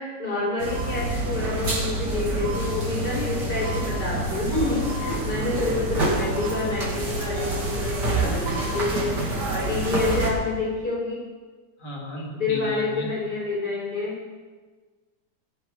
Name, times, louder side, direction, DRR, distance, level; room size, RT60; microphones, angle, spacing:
voice 1, 0.0-11.3 12.3-14.2, left 3 dB, 60° left, -5 dB, 5.8 m, -28 dB
sound 1, 0.6-10.3, right 2 dB, 75° right, 3.1 m, -27 dB
voice 2, 11.8-13.1, equal, 80° left, -2 dB, 3.0 m, -35 dB
17.0 x 10.5 x 4.8 m, 1.4 s
omnidirectional pair, 1.8 m